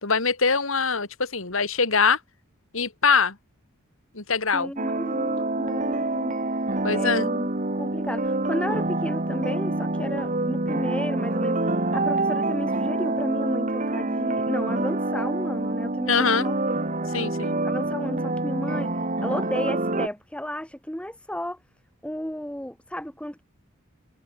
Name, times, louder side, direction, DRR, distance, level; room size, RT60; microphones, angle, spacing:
voice 1, 0.0-2.2 2.7-3.4 4.1-4.7 6.8-7.3 16.1-16.5 17.1-17.6, left 5 dB, 70° left, 2.4 m, -23 dB
voice 2, 4.5-6.4 6.9-7.5 7.7-16.6 17.0-17.1 17.4-21.6 22.0-23.4, equal, 5° left, 1.7 m, -33 dB
sound 1, 4.8-20.1, right 2 dB, 35° right, 2.2 m, -26 dB
head